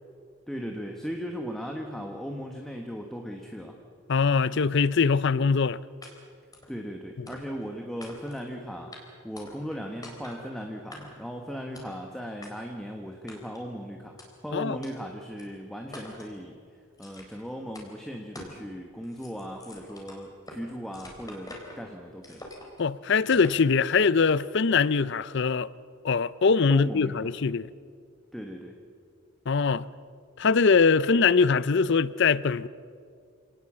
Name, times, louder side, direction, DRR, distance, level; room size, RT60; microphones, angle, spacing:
voice 1, 0.5-3.8 6.7-8.9 9.2-16.5 17.0-22.5 26.7-27.3 28.3-28.7, equal, ahead, 1.4 m, -37 dB
voice 2, 4.1-5.8 14.5-14.8 22.8-25.7 26.0-27.7 29.5-29.9 30.4-32.7, left 5 dB, 55° left, 0.5 m, -22 dB
sound 1, 6.0-6.1 6.5-6.7 7.3-7.7 8.0-8.5 8.9-9.0 9.4-9.8 10.0-10.4 10.9-11.3 11.7-12.0 12.4-12.5 13.3-13.6 14.2-14.3 14.8-14.9 15.4-15.5 15.9-16.3 17.0-17.4 17.7-17.9 18.3-18.6 18.9-20.6 20.9-21.8 22.2-22.8 23.3-23.6, left 1 dB, 20° left, 3.8 m, -45 dB
27.0 x 18.5 x 7.5 m
head